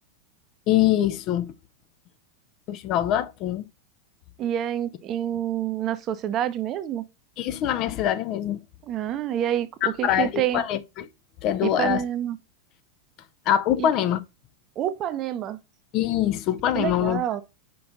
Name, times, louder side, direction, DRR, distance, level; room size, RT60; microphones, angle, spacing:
voice 1, 0.7-1.5 2.7-3.6 7.4-8.6 9.8-11.1 11.4-12.0 13.5-14.2 15.9-17.4, left 11 dB, 40° left, 0.7 m, -24 dB
voice 2, 4.4-7.0 8.8-10.6 11.6-12.4 13.8-13.9 14.8-15.6 16.7-17.4, right 11 dB, 35° right, 0.8 m, -27 dB
5.7 x 5.4 x 3.9 m
figure-of-eight pair, 90°, 0 cm